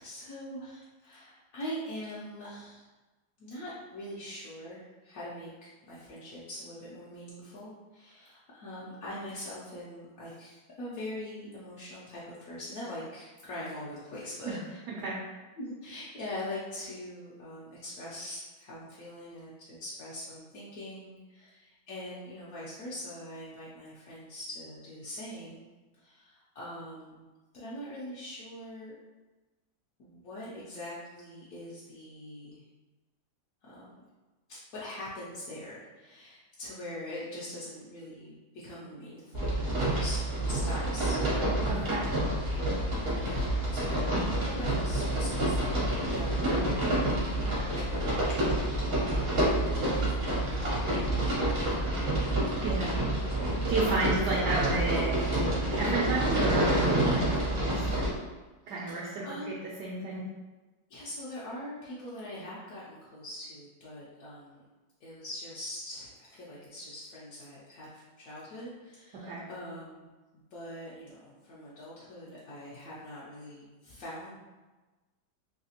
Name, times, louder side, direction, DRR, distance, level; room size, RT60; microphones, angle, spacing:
voice 1, 0.0-2.9 3.4-14.8 15.6-25.7 25.9-27.3 27.5-28.9 30.0-32.6 33.6-33.9 34.5-40.2 40.5-41.2 41.8-42.1 43.2-46.8 47.2-48.7 49.3-52.4 58.9-59.6 60.9-64.6 65.0-70.1 70.5-74.4, left 1 dB, 70° left, -8 dB, 0.9 m, -43 dB
voice 2, 14.9-15.2 41.7-42.1 52.6-53.0 53.7-55.2 55.7-58.1 58.7-60.2 69.2-69.4, right 3 dB, 70° right, -4 dB, 1.0 m, -32 dB
sound 1, 39.3-58.1, right 1 dB, 50° right, 0.7 m, -28 dB
3.3 x 2.8 x 2.8 m, 1.2 s
omnidirectional pair, 2.2 m